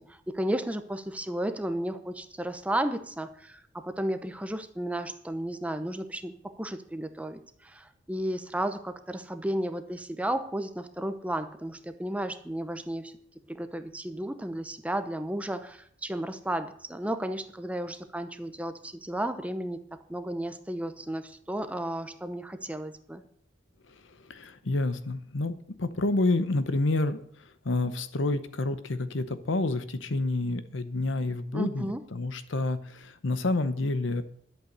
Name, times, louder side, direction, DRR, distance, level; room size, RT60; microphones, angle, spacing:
voice 1, 0.0-13.1 13.5-23.2 31.5-32.0, right 1 dB, 5° right, 9 dB, 0.7 m, -33 dB
voice 2, 23.9-34.2, left 2 dB, 75° left, 12 dB, 0.8 m, -29 dB
11.0 x 8.1 x 6.6 m, 0.67 s
head